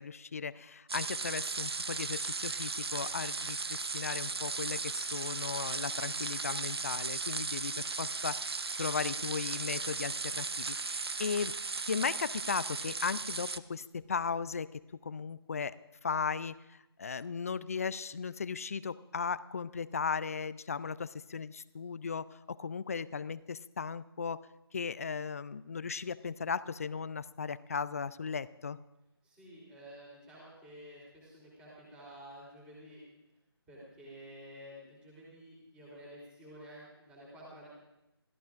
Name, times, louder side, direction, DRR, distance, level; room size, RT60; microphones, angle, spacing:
voice 1, 0.0-11.5 11.9-14.7 15.0-15.7 16.0-24.4 24.7-28.8, left 5 dB, 35° left, 17 dB, 0.4 m, -36 dB
sound 1, 0.9-13.6, right 4 dB, 70° right, 0.7 m, -36 dB
voice 2, 29.2-33.0 33.7-37.7, equal, 5° right, -5 dB, 3.6 m, -51 dB
28.0 x 14.5 x 2.5 m, 0.93 s
figure-of-eight pair, 155°, 14 cm